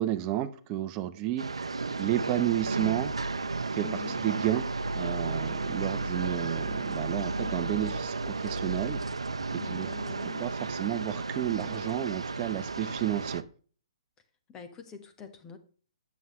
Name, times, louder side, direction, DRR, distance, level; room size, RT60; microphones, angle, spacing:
voice 1, 0.0-1.7 2.0-3.1 3.7-4.6 4.9-9.0 9.5-9.9 10.4-13.4, right 13 dB, 30° right, 11 dB, 0.8 m, -31 dB
sound 1, 1.4-13.4, right 3 dB, 90° right, 0.6 m, -33 dB
voice 2, 3.8-4.2 9.6-10.5 14.5-15.6, left 6 dB, 20° left, 7 dB, 1.3 m, -44 dB
9.2 x 7.3 x 3.1 m, 0.41 s
hypercardioid pair, 130°, 3 cm